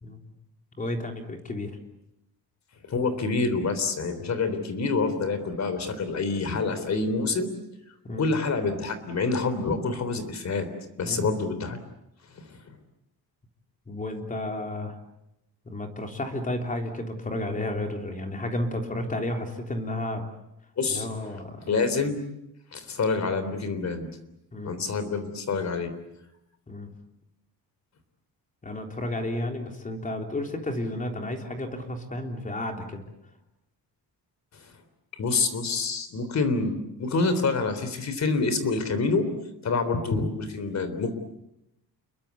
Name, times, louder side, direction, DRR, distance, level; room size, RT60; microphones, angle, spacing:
voice 1, 0.8-1.7 8.0-8.3 11.0-11.3 13.9-15.0 15.7-20.2 20.9-21.6 24.5-24.7 26.7-26.9 28.6-33.0, left 1 dB, 20° left, 4 dB, 3.6 m, -32 dB
voice 2, 2.9-7.5 8.1-10.7 11.0-11.8 12.4-12.7 20.8-21.1 21.7-22.2 22.7-24.1 24.6-25.9 34.5-34.7 35.2-39.3 39.6-41.1, left 4 dB, 45° left, 11 dB, 3.7 m, -27 dB
29.5 x 22.5 x 8.4 m, 0.85 s
wide cardioid pair, 165°, 38 cm